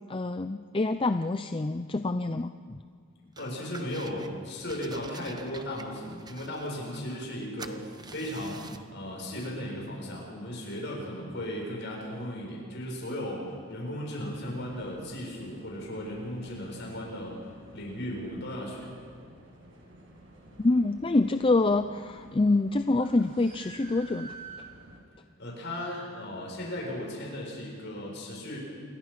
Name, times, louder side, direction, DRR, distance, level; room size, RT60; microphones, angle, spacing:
voice 1, 0.1-2.8 20.6-24.4, left 2 dB, 25° left, 9 dB, 0.5 m, -26 dB
voice 2, 3.4-17.4 17.7-18.9 25.4-28.6, left 1 dB, 55° left, -2 dB, 7.5 m, -36 dB
sound 1, 3.4-4.3 4.7-7.3 7.6-8.9, right 3 dB, 20° right, 1.0 m, -47 dB
sound 2, 14.3-25.0, right 2 dB, 60° right, 6.2 m, -51 dB
28.0 x 23.0 x 5.9 m, 2.2 s
head